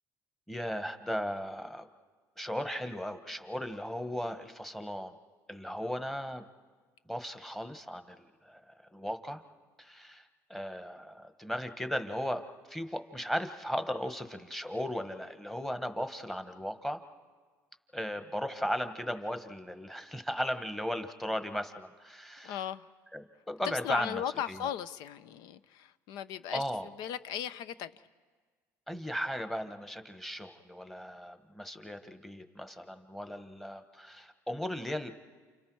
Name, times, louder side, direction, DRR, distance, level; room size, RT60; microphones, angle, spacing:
voice 1, 0.5-1.9 2.4-5.1 5.5-6.5 7.1-9.4 9.8-17.0 17.9-22.6 23.1-24.2 24.5-24.7 26.5-26.9 28.9-35.1, equal, 5° left, 8 dB, 1.3 m, -36 dB
voice 2, 22.4-22.9 23.6-28.0, left 10 dB, 80° left, 14 dB, 0.8 m, -37 dB
29.5 x 28.5 x 4.7 m, 1.5 s
cardioid pair, 120°, 7 cm